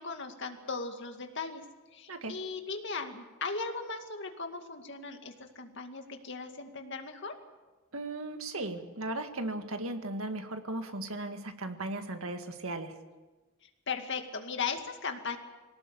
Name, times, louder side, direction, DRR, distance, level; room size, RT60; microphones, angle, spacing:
voice 1, 0.0-1.6 1.9-7.3 13.9-15.4, left 4 dB, 55° left, 5 dB, 2.2 m, -37 dB
voice 2, 7.9-12.9, right 2 dB, 70° right, 7 dB, 1.9 m, -37 dB
23.0 x 18.5 x 8.3 m, 1.2 s
head